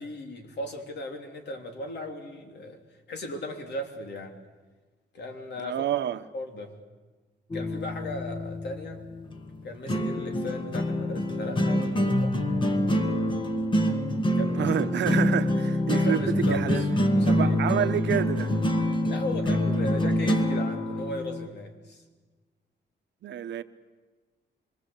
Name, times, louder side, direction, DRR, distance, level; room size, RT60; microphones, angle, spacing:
voice 1, 0.0-2.8 3.1-4.4 5.1-5.8 6.3-6.7 7.5-9.0 9.6-12.4 14.3-14.7 15.9-17.9 19.0-22.0, left 1 dB, 70° left, 3.0 m, -37 dB
voice 2, 5.6-6.2 13.2-13.3 14.5-16.8 17.3-18.6 23.2-23.6, right 10 dB, 85° right, 1.0 m, -29 dB
sound 1, 7.5-21.5, left 1 dB, 25° left, 1.6 m, -26 dB
25.5 x 22.5 x 8.1 m
wide cardioid pair, 170°, 18 cm